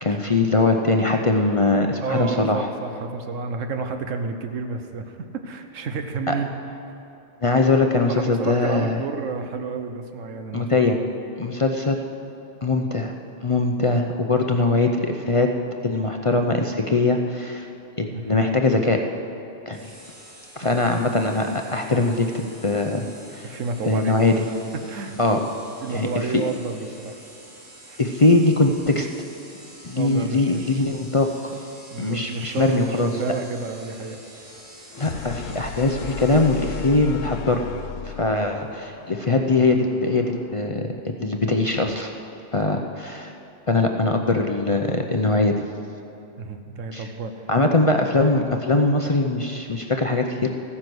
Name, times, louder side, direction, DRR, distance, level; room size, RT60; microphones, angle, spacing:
voice 1, 0.0-2.7 6.3-6.4 7.4-9.0 10.5-11.0 11.4-12.0 12.6-13.1 13.4-15.5 15.8-17.7 18.0-19.0 19.7-19.8 20.6-23.0 23.3-23.5 23.9-24.4 25.2-25.4 25.9-26.4 28.0-29.1 29.8-31.5 32.0-33.1 35.0-37.6 38.0-42.1 42.5-43.3 43.7-45.6 46.9-47.1 47.5-50.5, left 2 dB, 35° left, 3 dB, 0.6 m, -21 dB
voice 2, 2.0-6.5 8.1-10.9 18.1-18.3 20.8-20.9 23.4-24.2 24.7-25.4 25.8-27.1 27.9-28.0 29.9-30.8 31.9-34.2 35.1-35.3 46.4-47.5, right 4 dB, 85° right, 7 dB, 1.3 m, -30 dB
sound 1, 19.7-37.3, right 1 dB, 35° right, 3.4 m, -47 dB
sound 2, 34.9-40.8, left 7 dB, 90° left, 1.0 m, -36 dB
14.5 x 10.0 x 6.2 m, 2.8 s
omnidirectional pair, 1.3 m